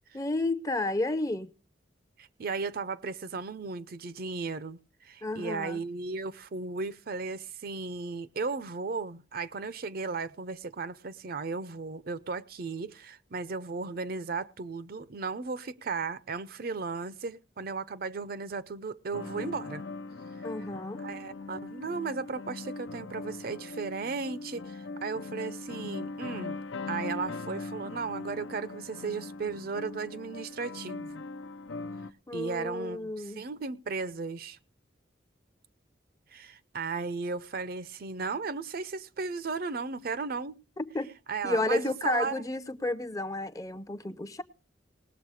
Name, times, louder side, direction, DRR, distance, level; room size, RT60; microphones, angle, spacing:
voice 1, 0.1-1.5 5.2-5.8 20.4-21.0 32.3-33.5 40.8-41.1 41.4-44.4, left 2 dB, 20° left, 0.6 m, -31 dB
voice 2, 2.2-19.8 21.0-26.6 26.9-31.2 32.3-33.1 33.4-34.6 36.3-40.6 41.3-42.3, right 4 dB, 50° right, 0.5 m, -35 dB
sound 1, 19.1-32.1, left 3 dB, 85° left, 0.6 m, -40 dB
19.0 x 7.1 x 4.8 m
head